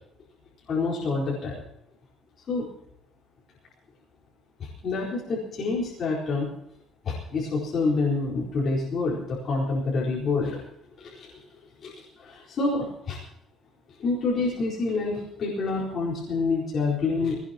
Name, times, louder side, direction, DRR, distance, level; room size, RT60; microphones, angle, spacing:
voice 1, 0.7-1.6 2.5-2.7 4.8-6.5 7.0-10.6 11.0-11.3 11.8-11.9 12.2-13.2 14.0-17.4, left 3 dB, 35° left, -6 dB, 4.4 m, -27 dB
21.0 x 19.5 x 3.0 m, 0.80 s
cardioid pair, 180°, 0 cm